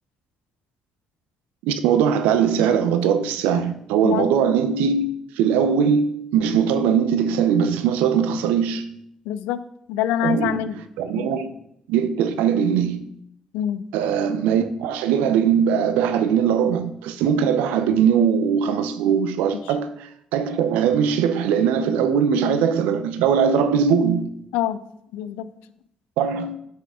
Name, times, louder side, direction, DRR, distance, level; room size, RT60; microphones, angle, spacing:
voice 1, 1.6-8.8 10.2-10.6 11.0-11.5 11.9-13.0 13.9-19.9 20.3-24.3 26.2-26.6, right 7 dB, 80° right, 0.6 m, -20 dB
voice 2, 9.3-9.6 9.9-10.7 11.2-11.3 13.5-13.8 24.5-24.8 25.1-25.5, left 11 dB, 80° left, 0.4 m, -25 dB
10.0 x 5.7 x 3.7 m
hypercardioid pair, 45°, 3 cm